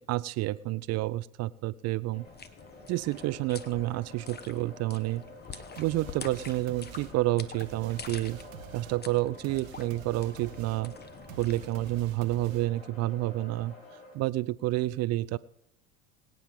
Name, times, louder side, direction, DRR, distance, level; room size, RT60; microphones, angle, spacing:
voice 1, 0.1-2.2 2.9-5.2 5.8-8.4 8.7-10.9 11.4-13.7 14.1-15.4, right 17 dB, 40° right, 18 dB, 0.5 m, -29 dB
sound 1, 2.1-14.1, left 1 dB, 80° left, 5.1 m, -50 dB
sound 2, 2.2-12.0, left 6 dB, 25° left, 1.2 m, -47 dB
sound 3, 5.8-13.0, right 10 dB, 75° right, 1.1 m, -48 dB
23.0 x 9.2 x 3.7 m, 0.72 s
hypercardioid pair, 80°, 40 cm